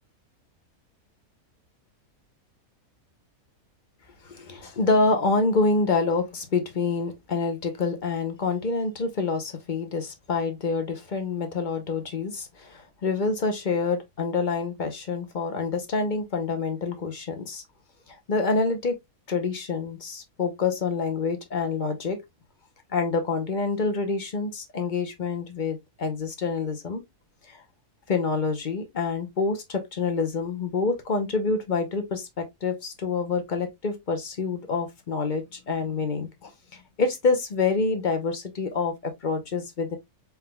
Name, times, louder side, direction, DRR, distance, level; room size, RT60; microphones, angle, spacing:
voice 1, 4.2-17.6 18.3-19.0 19.3-22.2 22.9-27.0 27.5-27.6 28.1-40.0, left 4 dB, 40° left, 0.8 m, -27 dB
4.5 x 3.7 x 2.2 m
omnidirectional pair, 1.6 m